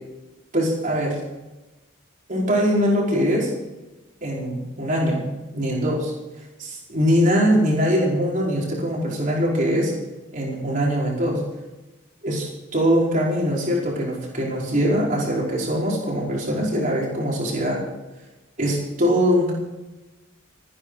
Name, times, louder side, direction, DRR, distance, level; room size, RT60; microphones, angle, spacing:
voice 1, 0.5-1.2 2.3-3.5 4.2-6.1 6.6-9.9 10.3-11.4 12.2-17.8 18.6-19.5, equal, 40° right, -3 dB, 4.9 m, -22 dB
26.5 x 10.0 x 4.9 m, 1.1 s
head